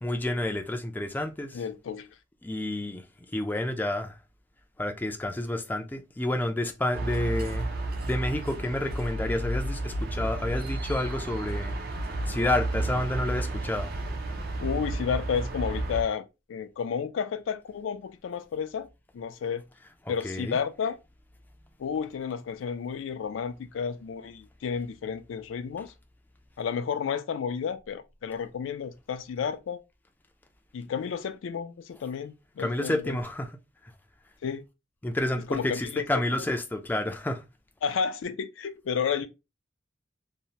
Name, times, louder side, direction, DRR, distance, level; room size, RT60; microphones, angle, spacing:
voice 1, 0.0-1.6 2.4-3.0 3.3-4.1 4.8-7.7 8.1-11.8 12.3-13.9 20.2-20.6 32.6-33.5 35.0-37.4, left 1 dB, 10° left, 0.3 m, -29 dB
voice 2, 1.5-2.1 14.6-18.9 19.1-19.6 20.1-21.0 21.8-25.9 26.6-29.8 30.7-33.2 34.4-34.6 35.5-36.0 36.4-36.5 37.8-39.3, left 6 dB, 85° left, 0.4 m, -32 dB
sound 1, 6.9-16.0, right 2 dB, 55° right, 0.4 m, -32 dB
2.7 x 2.0 x 2.8 m
head